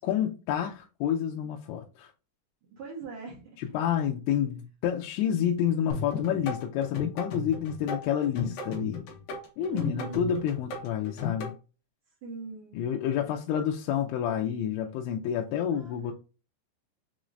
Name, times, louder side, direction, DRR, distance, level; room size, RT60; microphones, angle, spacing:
voice 1, 0.0-2.1 3.6-9.0 9.6-11.6 12.7-16.1, left 9 dB, 90° left, 2.9 m, -29 dB
voice 2, 2.7-3.6 9.7-10.4 12.2-12.8 15.7-16.1, right 5 dB, 70° right, 1.3 m, -41 dB
sound 1, 5.9-11.5, left 4 dB, 65° left, 2.6 m, -35 dB
6.7 x 3.1 x 2.5 m
omnidirectional pair, 5.0 m